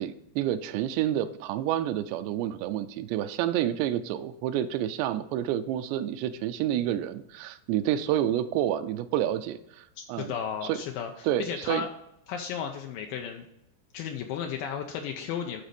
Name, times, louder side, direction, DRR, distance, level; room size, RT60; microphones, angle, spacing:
voice 1, 0.0-10.4 10.6-10.8 11.2-11.8, right 11 dB, 85° right, 9 dB, 2.7 m, -29 dB
voice 2, 10.0-11.9 12.3-13.5 13.9-15.6, left 8 dB, 90° left, 3 dB, 2.0 m, -34 dB
11.5 x 4.1 x 5.1 m, 0.81 s
omnidirectional pair, 4.8 m